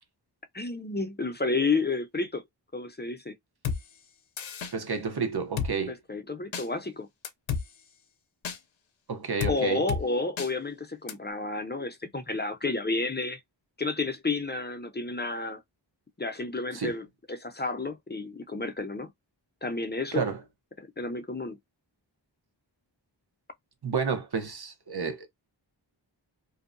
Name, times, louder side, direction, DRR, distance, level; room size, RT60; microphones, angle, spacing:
voice 1, 0.5-2.4 2.7-3.4 5.9-7.1 9.5-13.4 13.8-15.6 16.2-19.1 19.6-20.2 20.8-21.6, left 3 dB, 25° left, 0.5 m, -31 dB
Drum kit, 3.6-3.8 4.4-4.7 5.6-5.7 6.5-6.7 7.2-7.6 8.4-8.6 9.4-9.6 9.9-10.0 10.4-10.5 11.1-11.2, left 6 dB, 85° left, 0.5 m, -30 dB
voice 2, 4.7-6.0 9.1-9.8 16.7-16.9 20.1-20.4 23.8-25.3, right 5 dB, 55° right, 0.8 m, -30 dB
2.7 x 2.0 x 2.4 m
wide cardioid pair, 45°, 46 cm